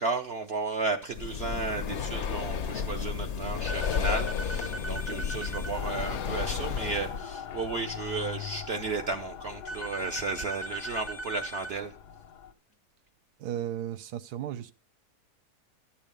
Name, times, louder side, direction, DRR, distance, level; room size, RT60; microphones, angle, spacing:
voice 1, 0.0-11.9, right 3 dB, 55° right, 0.7 m, -33 dB
Breathing, 1.1-7.2, left 7 dB, 60° left, 0.8 m, -32 dB
sound 1, 3.7-5.7 9.7-11.7, right 2 dB, 15° left, 0.5 m, -39 dB
Mechanical fan, 5.7-12.5, left 7 dB, 90° left, 1.4 m, -41 dB
voice 2, 13.4-14.7, right 11 dB, 80° right, 1.3 m, -35 dB
11.5 x 7.2 x 5.2 m
omnidirectional pair, 1.7 m